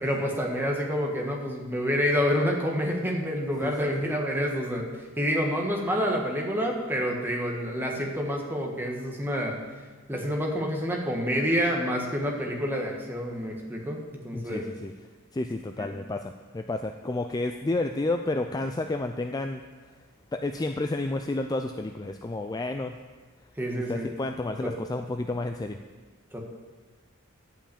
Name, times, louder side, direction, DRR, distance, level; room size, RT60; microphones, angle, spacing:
voice 1, 0.0-4.9 5.2-9.6 10.1-14.7 15.8-15.9 23.6-24.1 24.6-24.7 26.3-26.4, equal, 10° right, 0 dB, 1.4 m, -28 dB
voice 2, 3.6-4.2 14.3-14.9 15.3-19.6 20.3-23.0 23.8-25.8, left 2 dB, 15° left, 6 dB, 0.3 m, -31 dB
11.0 x 5.7 x 8.5 m, 1.4 s
head